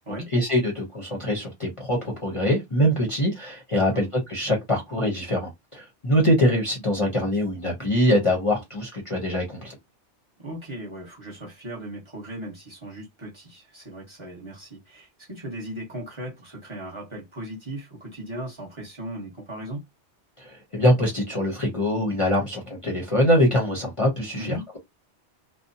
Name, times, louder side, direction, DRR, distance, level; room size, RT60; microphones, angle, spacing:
voice 1, 0.3-9.8 20.4-24.8, equal, 35° left, 0.7 m, -23 dB
voice 2, 10.4-19.8 24.3-24.6, right 1 dB, 25° right, 1.0 m, -37 dB
2.7 x 2.0 x 2.6 m
omnidirectional pair, 1.2 m